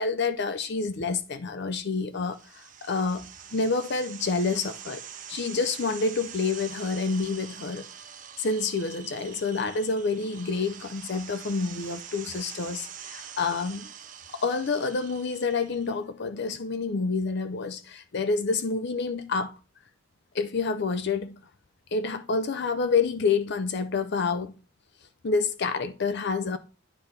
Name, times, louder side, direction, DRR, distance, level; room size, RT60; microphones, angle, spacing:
voice 1, 0.0-5.0 5.3-7.9 8.4-13.9 14.3-19.6 20.3-21.4 21.9-24.5 25.2-26.6, left 4 dB, 55° left, 0.5 m, -28 dB
sound 1, 2.2-16.0, right 8 dB, 40° right, 0.7 m, -44 dB
9.9 x 3.3 x 5.6 m
head